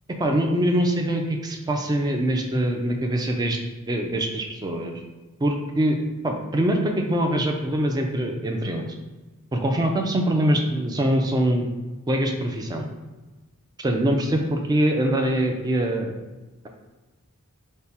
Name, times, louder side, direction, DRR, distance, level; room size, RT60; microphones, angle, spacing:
voice 1, 0.2-3.6 3.9-4.9 5.4-6.0 6.2-8.9 9.5-11.7 12.1-12.9 13.8-16.1, right 1 dB, 20° right, 2 dB, 0.3 m, -23 dB
3.4 x 2.1 x 4.2 m, 1.2 s
head